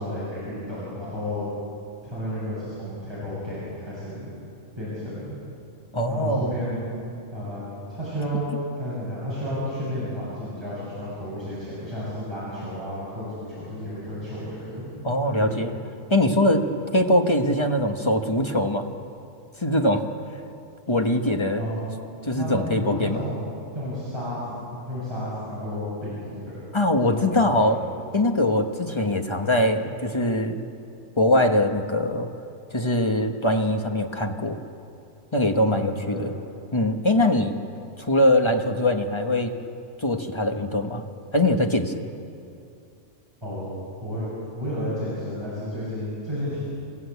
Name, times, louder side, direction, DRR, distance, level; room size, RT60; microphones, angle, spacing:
voice 1, 0.0-1.5 2.0-4.3 4.8-5.4 6.1-6.8 7.3-14.9 15.4-15.5 16.4-16.6 21.6-21.9 22.3-26.7 27.1-27.7 28.9-29.0 35.6-36.2 43.4-43.7 44.0-44.3 44.5-46.6, equal, 20° right, -10 dB, 7.3 m, -32 dB
voice 2, 5.9-6.6 15.0-15.7 16.1-16.6 16.9-18.9 19.6-20.0 20.9-21.7 22.2-23.2 26.7-27.8 28.1-30.6 31.2-32.3 32.7-34.6 35.3-36.3 36.7-37.6 38.0-39.5 40.0-41.0 41.3-41.9, left 1 dB, 25° left, 4 dB, 1.2 m, -22 dB
27.5 x 15.5 x 8.3 m, 2.6 s
omnidirectional pair, 1.3 m